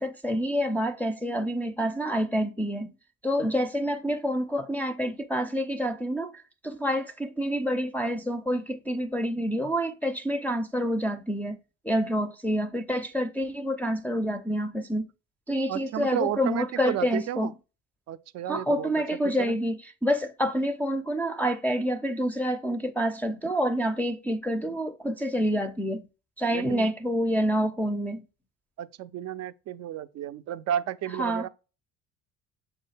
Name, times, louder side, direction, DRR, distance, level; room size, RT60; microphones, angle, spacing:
voice 1, 0.0-2.9 3.2-6.3 6.6-11.6 11.8-15.1 15.5-17.5 18.5-19.8 20.0-26.1 26.4-28.2 31.2-31.5, equal, 5° left, 0.5 m, -27 dB
voice 2, 15.7-17.5 18.1-18.9 19.4-19.6 26.5-26.9 28.8-31.5, right 11 dB, 50° right, 0.5 m, -32 dB
6.4 x 2.3 x 3.2 m
hypercardioid pair, 60°, 33 cm